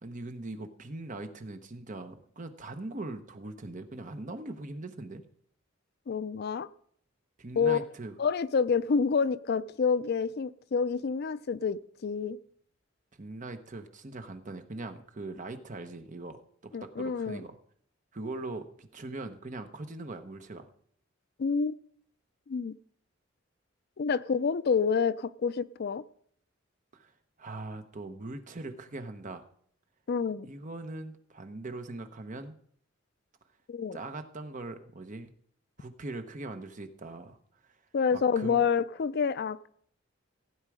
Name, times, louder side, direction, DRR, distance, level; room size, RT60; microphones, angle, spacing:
voice 1, 0.0-5.2 7.4-8.2 13.1-16.4 16.6-17.6 18.1-20.7 26.9-27.1 27.4-29.4 30.4-32.6 33.9-35.3 35.8-37.4 38.1-38.6, right 2 dB, 40° right, 8 dB, 1.0 m, -41 dB
voice 2, 6.1-6.7 7.6-7.8 8.2-12.4 16.7-17.4 21.4-21.7 22.5-22.7 24.0-26.0 30.1-30.5 33.7-34.0 37.9-39.7, left 5 dB, 55° left, 16 dB, 0.4 m, -28 dB
16.0 x 9.0 x 4.9 m, 0.62 s
head